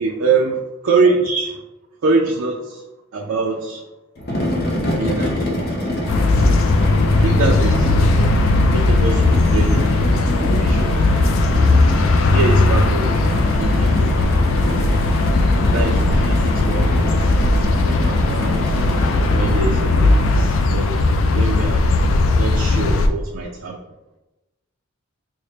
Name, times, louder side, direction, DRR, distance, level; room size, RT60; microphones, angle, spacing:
voice 1, 0.0-0.6 0.8-1.6 2.0-2.8 3.1-3.8 5.0-5.9 6.4-6.6 7.2-8.2 8.7-10.1 10.4-11.1 11.7-12.0 12.3-13.1 13.6-14.3 15.6-17.1 17.4-18.9 19.3-21.0 21.3-21.9 22.4-23.8, right 4 dB, 85° right, -1 dB, 0.4 m, -24 dB
sound 1, 4.2-20.6, left 1 dB, 50° left, 0.6 m, -25 dB
sound 2, 6.1-23.1, left 2 dB, 90° left, 0.4 m, -17 dB
4.1 x 2.1 x 3.3 m, 1.0 s
head